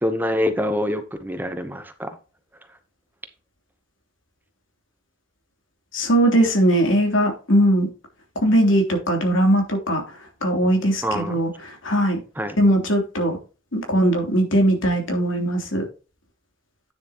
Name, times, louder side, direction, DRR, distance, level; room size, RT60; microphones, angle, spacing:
voice 1, 0.0-2.1 11.0-11.4 12.4-12.6, equal, 10° right, 0.8 m, -25 dB
voice 2, 5.9-7.9 8.4-12.2 12.6-13.4 13.7-15.8, right 1 dB, 80° left, 3.1 m, -20 dB
9.6 x 7.0 x 2.9 m
head